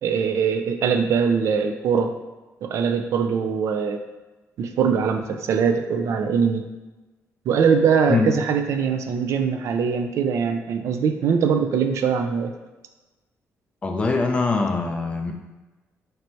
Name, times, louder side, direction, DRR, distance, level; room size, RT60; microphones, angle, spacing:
voice 1, 0.0-2.1 2.6-4.0 4.6-6.7 7.5-12.5, right 6 dB, 65° right, 6 dB, 0.3 m, -22 dB
voice 2, 13.8-15.3, left 4 dB, 20° left, 3 dB, 0.4 m, -22 dB
3.2 x 2.7 x 4.4 m, 1.2 s
cardioid pair, 155°, 5 cm